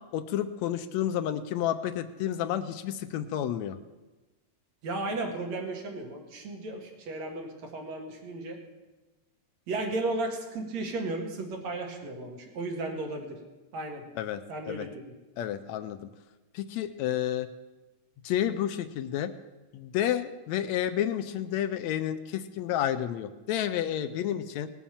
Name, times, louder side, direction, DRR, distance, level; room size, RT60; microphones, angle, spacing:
voice 1, 0.1-3.8 14.2-14.9 15.4-16.1 16.5-17.5 18.2-19.3 19.7-24.7, left 11 dB, 80° left, 10 dB, 1.9 m, -30 dB
voice 2, 4.8-8.6 9.7-13.4 13.7-14.0 14.5-14.9, right 2 dB, 70° right, 2 dB, 3.1 m, -34 dB
18.5 x 7.2 x 7.2 m, 1.1 s
omnidirectional pair, 3.3 m